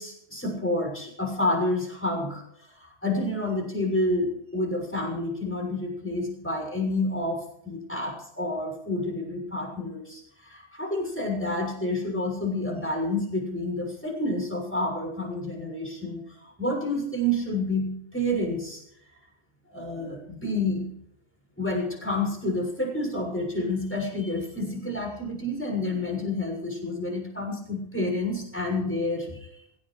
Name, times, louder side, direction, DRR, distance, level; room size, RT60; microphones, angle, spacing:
voice 1, 0.0-18.8 19.7-20.9 21.6-29.5, left 1 dB, 5° left, 1 dB, 6.5 m, -29 dB
27.0 x 16.5 x 3.3 m, 0.77 s
omnidirectional pair, 1.8 m